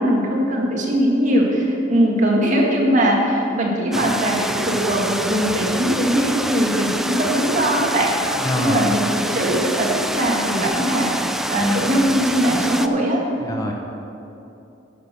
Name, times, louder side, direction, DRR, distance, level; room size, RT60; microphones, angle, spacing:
voice 1, 0.0-8.1 8.6-11.1 11.5-13.2, equal, 40° right, -2 dB, 1.8 m, -20 dB
sound 1, 3.9-12.9, right 1 dB, ahead, 0.3 m, -26 dB
voice 2, 8.4-9.0 13.4-13.7, equal, 20° left, 0 dB, 0.9 m, -25 dB
11.0 x 6.5 x 6.7 m, 2.8 s
head